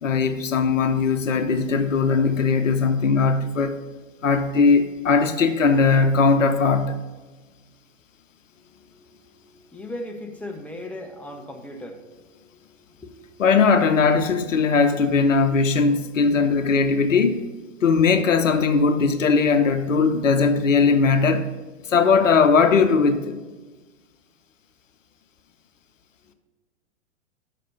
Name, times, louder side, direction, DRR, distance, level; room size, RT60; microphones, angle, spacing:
voice 1, 0.0-3.8 4.2-7.0 13.4-17.4 17.8-21.5 21.8-23.4, left 5 dB, 80° left, 0.7 m, -19 dB
voice 2, 8.7-13.3 26.3-26.4, left 1 dB, 5° left, 0.5 m, -39 dB
6.6 x 5.7 x 5.3 m
figure-of-eight pair, 105°, 38 cm